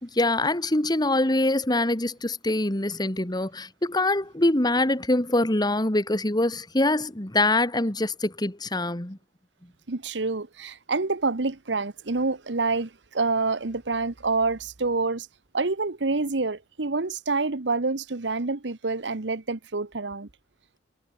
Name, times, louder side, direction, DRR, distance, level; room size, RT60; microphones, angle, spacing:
voice 1, 0.0-9.2, left 2 dB, 25° left, 1.9 m, -24 dB
voice 2, 9.9-15.3 15.5-20.3, right 3 dB, 80° right, 1.2 m, -27 dB
head